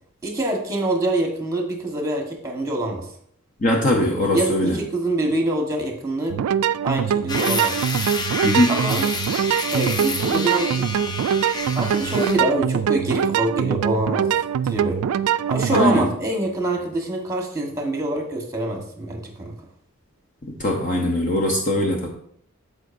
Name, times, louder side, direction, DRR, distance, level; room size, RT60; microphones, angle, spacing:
voice 1, 0.2-3.1 4.3-6.4 6.8-7.8 8.7-9.0 9.7-10.8 11.7-14.3 14.6-15.0 15.5-19.5, right 1 dB, 15° right, 2 dB, 1.3 m, -25 dB
voice 2, 3.6-4.8 8.4-8.7 15.7-16.1 20.4-22.1, left 1 dB, 35° left, 0 dB, 0.8 m, -20 dB
sound 1, 6.3-15.9, right 8 dB, 80° right, 0.3 m, -23 dB
sound 2, 7.3-12.4, left 3 dB, 20° left, 0.5 m, -29 dB
14.0 x 5.0 x 2.6 m, 0.64 s
head